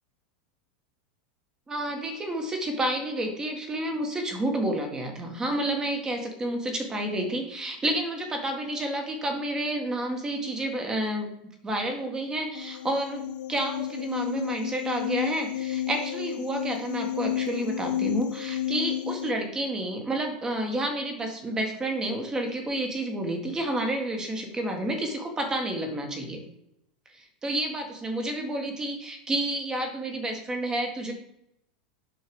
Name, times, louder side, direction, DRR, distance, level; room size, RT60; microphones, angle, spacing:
voice 1, 1.7-11.3 11.6-26.4 27.1-31.1, right 1 dB, 15° right, 3 dB, 1.8 m, -30 dB
sound 1, 12.5-19.3, left 12 dB, 85° left, 0.5 m, -31 dB
7.9 x 5.7 x 5.3 m, 0.80 s
supercardioid pair, 135°, 4 cm